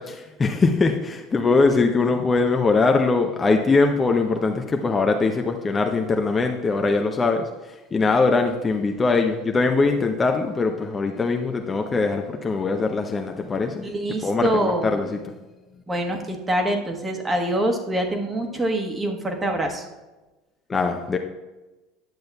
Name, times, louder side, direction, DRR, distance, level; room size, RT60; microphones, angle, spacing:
voice 1, 0.0-7.5 7.9-13.9 14.2-15.3 20.7-21.2, left 3 dB, 25° left, 4 dB, 0.6 m, -22 dB
voice 2, 13.8-15.1 15.9-19.9, right 1 dB, 20° right, 2 dB, 1.3 m, -25 dB
10.5 x 7.6 x 2.3 m, 1.1 s
figure-of-eight pair, 70°, 0 cm